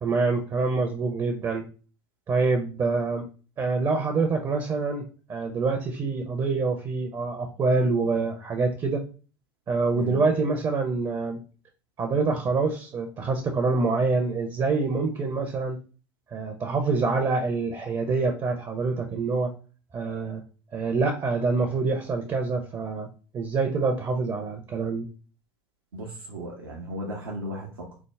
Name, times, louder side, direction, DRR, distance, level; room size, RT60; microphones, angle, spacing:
voice 1, 0.0-1.7 2.3-3.2 3.6-9.0 9.7-11.4 12.0-15.8 16.3-19.5 19.9-20.4 20.7-23.1 23.3-25.1, right 4 dB, 30° right, 4 dB, 0.5 m, -26 dB
voice 2, 25.9-28.0, right 1 dB, 80° right, -1 dB, 0.5 m, -35 dB
3.4 x 2.0 x 3.2 m, 0.37 s
figure-of-eight pair, 65°, 12 cm